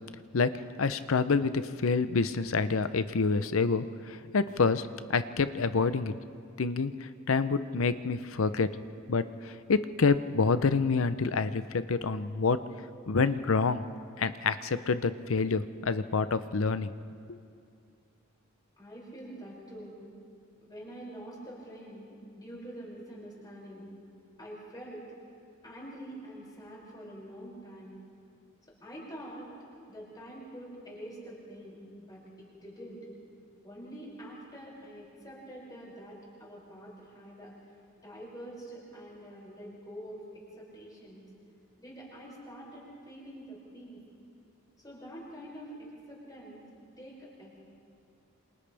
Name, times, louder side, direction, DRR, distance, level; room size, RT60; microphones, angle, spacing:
voice 1, 0.3-6.1 6.6-8.7 9.1-12.6 13.1-13.8 14.2-16.9 17.3-17.4, left 4 dB, 80° left, 13 dB, 0.7 m, -27 dB
voice 2, 18.8-20.0 20.6-23.9 24.4-25.2 25.6-28.0 28.8-29.5 29.9-33.1 33.6-37.6 38.0-41.3 41.8-44.0 44.8-46.6 47.0-47.6, right 1 dB, 20° left, -6 dB, 6.4 m, -46 dB
28.0 x 27.0 x 3.5 m, 2.3 s
head